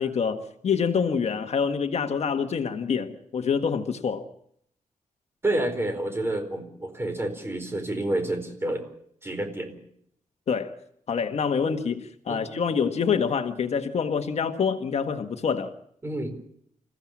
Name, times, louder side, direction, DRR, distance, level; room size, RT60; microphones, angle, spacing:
voice 1, 0.0-4.3 10.5-10.7 11.1-15.7, left 6 dB, 55° left, 1.5 m, -26 dB
voice 2, 5.4-8.8 9.2-9.7 12.3-12.6 16.0-16.3, right 1 dB, 20° right, 4.4 m, -29 dB
28.5 x 15.5 x 7.4 m
wide cardioid pair, 150°, 13 cm